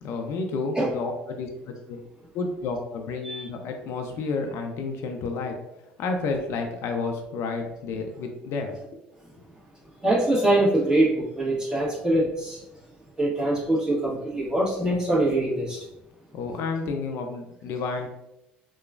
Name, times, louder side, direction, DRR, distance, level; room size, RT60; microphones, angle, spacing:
voice 1, 0.0-2.0 2.3-5.6 6.0-8.7 16.3-18.1, left 4 dB, 60° left, 4 dB, 0.4 m, -30 dB
voice 2, 10.0-12.6 13.2-15.8, right 1 dB, 15° right, -5 dB, 1.3 m, -23 dB
2.9 x 2.3 x 2.4 m, 0.88 s
supercardioid pair, 75°, 5 cm